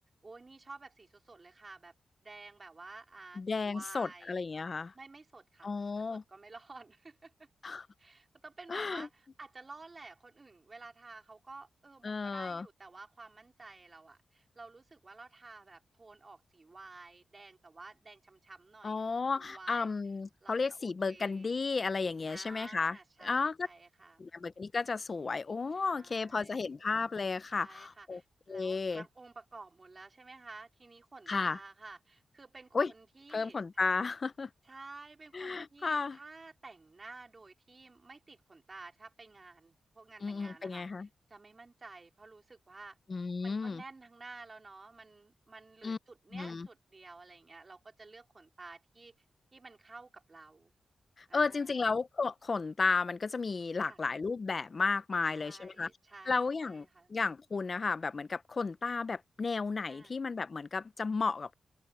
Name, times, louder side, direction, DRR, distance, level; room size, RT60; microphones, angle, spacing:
voice 1, 0.2-1.9 2.2-4.4 4.9-7.5 8.0-19.9 20.4-21.7 22.3-24.2 25.7-26.7 27.5-33.8 34.6-43.0 43.4-49.1 49.5-50.7 51.3-51.8 53.8-54.0 55.1-57.1 59.8-60.2, right 3 dB, 30° right, 4.1 m, -52 dB
voice 2, 3.4-4.9 5.6-6.2 7.6-7.9 8.7-9.1 12.0-12.7 18.8-23.7 24.2-28.2 28.5-29.0 31.3-31.6 32.7-32.9 33.3-34.5 35.3-36.2 40.2-41.1 43.1-43.8 45.8-46.0 46.3-46.7 51.2-55.9 56.3-61.5, left 4 dB, 40° left, 0.7 m, -33 dB
open air
cardioid pair, 95°, 0 cm